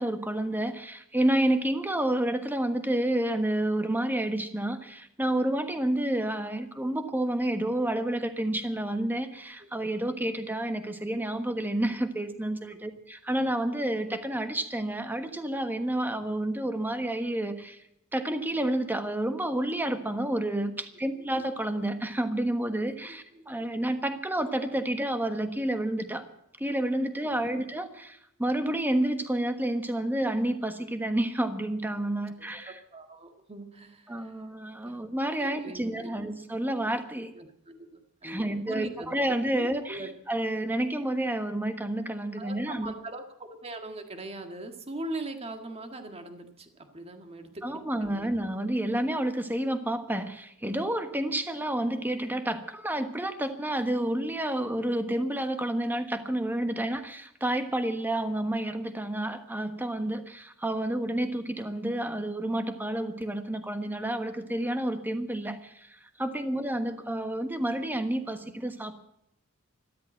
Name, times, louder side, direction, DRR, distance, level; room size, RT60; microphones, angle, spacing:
voice 1, 0.0-17.8 18.1-26.2 26.6-32.7 34.1-37.3 38.2-40.0 40.3-42.9 47.6-68.9, right 1 dB, 10° right, 8 dB, 1.3 m, -30 dB
voice 2, 20.9-21.3 23.0-23.4 27.3-27.5 32.5-34.4 34.8-35.0 35.4-36.1 37.3-40.1 42.3-48.3 50.9-51.0 66.5-66.6, right 2 dB, 30° right, 5 dB, 1.8 m, -41 dB
13.5 x 13.5 x 7.7 m, 0.74 s
head